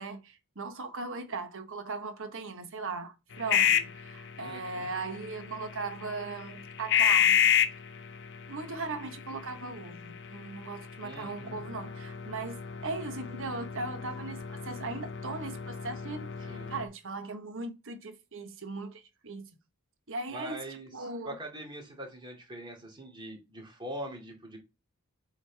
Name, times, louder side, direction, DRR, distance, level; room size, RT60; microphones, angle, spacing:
voice 1, 0.0-7.5 8.5-19.5 20.1-20.6 20.9-21.4, right 3 dB, 60° right, 1.3 m, -38 dB
sound 1, 3.3-16.9, left 9 dB, 55° left, 0.8 m, -31 dB
voice 2, 4.4-4.9 11.0-11.6 16.5-16.7 20.3-24.6, right 1 dB, 20° right, 2.6 m, -43 dB
7.6 x 3.9 x 3.5 m
head